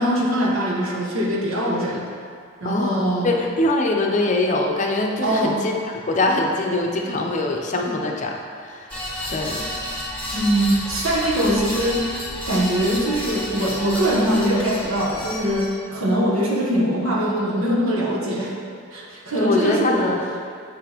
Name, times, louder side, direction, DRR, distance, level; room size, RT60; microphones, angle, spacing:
voice 1, 0.0-2.0 2.6-3.3 5.2-5.7 10.3-12.1 12.5-18.5 18.9-20.1, equal, 90° right, -3 dB, 1.2 m, -22 dB
voice 2, 2.6-5.7 6.1-8.4 8.6-8.9 9.3-9.7 19.4-20.2, left 2 dB, 35° left, 1 dB, 0.6 m, -23 dB
sound 1, 8.9-15.7, left 1 dB, 10° left, 1.5 m, -31 dB
7.3 x 5.8 x 3.0 m, 2.2 s
head